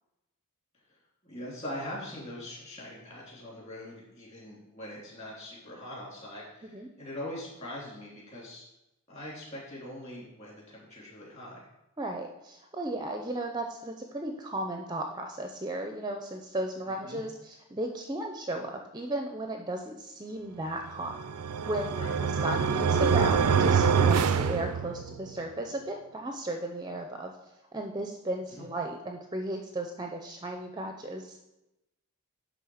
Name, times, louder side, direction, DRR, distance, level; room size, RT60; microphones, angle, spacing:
voice 1, 1.2-8.6 9.1-11.7 16.9-17.2 21.9-22.2 28.5-28.7, left 1 dB, 30° left, -5 dB, 3.2 m, -42 dB
voice 2, 12.0-21.2 21.7-22.0 22.4-27.3 27.7-31.4, right 1 dB, 20° right, 4 dB, 0.5 m, -35 dB
sound 1, 21.0-25.3, right 6 dB, 90° right, 0.5 m, -25 dB
10.5 x 3.7 x 6.3 m, 0.91 s
head